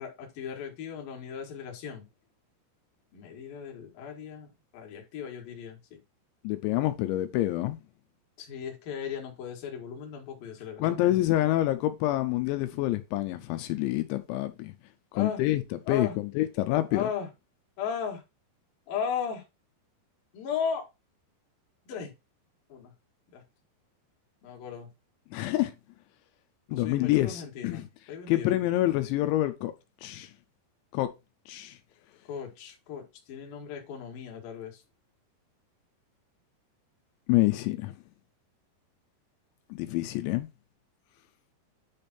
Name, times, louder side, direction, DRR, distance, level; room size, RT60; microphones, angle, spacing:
voice 1, 0.0-2.0 3.1-6.0 8.4-11.2 15.1-15.4 15.9-16.1 16.9-17.3 17.8-18.2 18.9-19.4 20.3-20.9 21.9-22.1 22.7-22.9 23.3-23.4 24.4-24.9 26.7-27.8 28.1-28.5 32.3-34.8, left 7 dB, 60° left, 2.9 m, -36 dB
voice 2, 6.4-7.8 10.8-14.7 15.1-15.6 15.9-17.1 25.3-25.7 26.7-27.9 28.3-29.7 30.0-30.3 30.9-31.1 31.5-31.8 37.3-37.9 39.7-40.5, left 15 dB, 85° left, 3.0 m, -27 dB
9.7 x 3.5 x 4.2 m
omnidirectional pair, 5.3 m